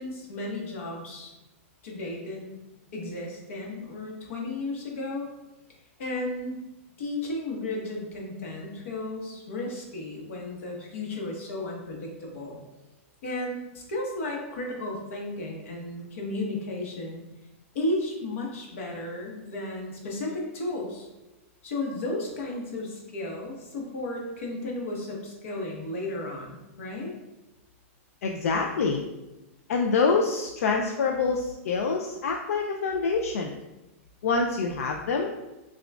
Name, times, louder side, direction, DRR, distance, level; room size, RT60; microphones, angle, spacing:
voice 1, 0.0-1.3 1.8-2.5 2.9-5.3 6.0-6.6 7.0-12.6 13.2-17.2 17.7-21.1 21.6-27.1, left 2 dB, 65° left, -1 dB, 1.1 m, -34 dB
voice 2, 28.2-29.0 29.7-33.5 34.2-35.3, left 4 dB, 85° left, 2 dB, 0.4 m, -26 dB
5.7 x 2.4 x 2.3 m, 1.0 s
supercardioid pair, 165°, 8 cm